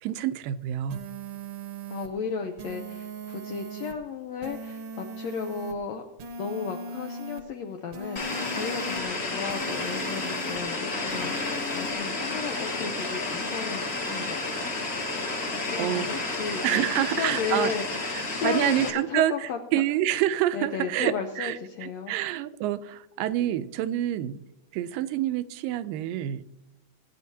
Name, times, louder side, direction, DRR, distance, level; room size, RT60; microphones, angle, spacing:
voice 1, 0.0-1.0 15.8-16.2 16.6-17.7 18.4-24.4 24.7-26.4, right 12 dB, 85° right, 11 dB, 2.3 m, -27 dB
sound 1, 0.9-2.1 2.6-3.9 4.4-5.7 6.2-7.4 7.9-9.0 9.5-10.6 11.1-11.9, right 2 dB, 65° right, 1.6 m, -39 dB
voice 2, 1.9-6.0 6.4-14.6 15.7-19.6 20.5-22.2, left 6 dB, 80° left, 4 dB, 1.6 m, -34 dB
sound 2, 8.2-18.9, left 3 dB, 35° left, 1.6 m, -31 dB
19.0 x 9.5 x 2.8 m, 0.88 s
omnidirectional pair, 3.9 m